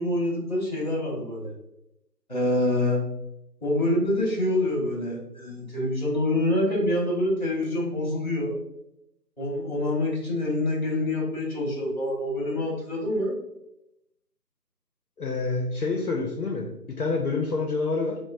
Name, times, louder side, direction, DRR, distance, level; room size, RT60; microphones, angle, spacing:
voice 1, 0.0-1.5 2.3-3.0 3.6-8.5 9.4-13.4, left 1 dB, 25° left, -3 dB, 1.0 m, -26 dB
voice 2, 15.2-18.2, left 3 dB, 65° left, 2 dB, 0.6 m, -27 dB
5.9 x 2.0 x 2.5 m, 0.86 s
figure-of-eight pair, 165°, 50 cm